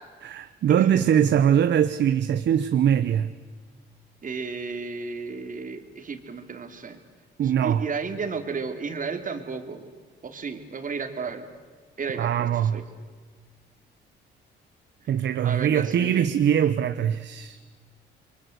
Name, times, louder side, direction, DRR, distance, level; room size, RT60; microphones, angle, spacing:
voice 1, 0.2-3.3 7.4-7.8 12.1-12.8 15.1-17.6, right 9 dB, 65° right, 1.0 m, -22 dB
voice 2, 4.2-7.0 7.4-9.9 10.2-11.5 12.0-12.8 15.4-16.3, right 5 dB, 45° right, 3.2 m, -33 dB
29.0 x 23.0 x 8.1 m
cardioid pair, 90°, 20 cm